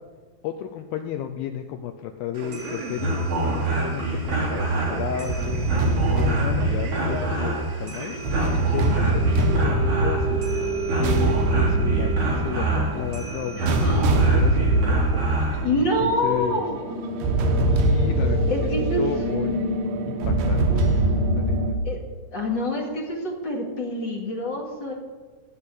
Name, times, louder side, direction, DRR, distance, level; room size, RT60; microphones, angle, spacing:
voice 1, 0.4-10.4 11.0-15.2 16.0-16.6 17.7-18.4 18.8-19.6 20.1-21.6, left 10 dB, 80° left, 6 dB, 2.2 m, -33 dB
Male speech man speaking, 2.3-9.6, right 3 dB, 55° right, 2.0 m, -37 dB
sound 1, 2.4-15.6, right 2 dB, 35° right, 4.3 m, -27 dB
sound 2, 4.8-21.7, right 1 dB, 70° right, 3.1 m, -24 dB
voice 2, 13.6-14.2 15.6-16.8 18.1-18.2 18.5-19.0 21.8-22.0 22.3-24.9, left 1 dB, 35° left, -1 dB, 2.3 m, -26 dB
15.0 x 5.7 x 9.7 m, 1.5 s
omnidirectional pair, 4.8 m